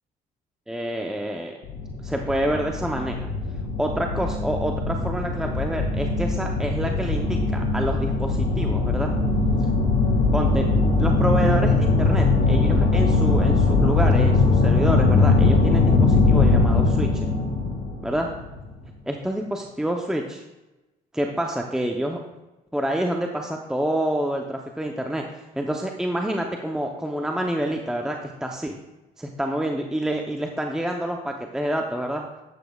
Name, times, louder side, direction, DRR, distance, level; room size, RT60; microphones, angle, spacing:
voice 1, 0.7-1.6 2.0-3.3 3.8-9.1 10.3-10.7 11.0-17.3 18.0-18.3 19.1-20.4 21.1-22.2 22.7-25.2 25.5-28.7 29.2-32.3, right 1 dB, 5° right, 2 dB, 0.7 m, -27 dB
sound 1, 1.6-18.7, left 3 dB, 85° left, 1.9 m, -21 dB
12.0 x 8.3 x 2.3 m, 1.0 s
cardioid pair, 110°, 17 cm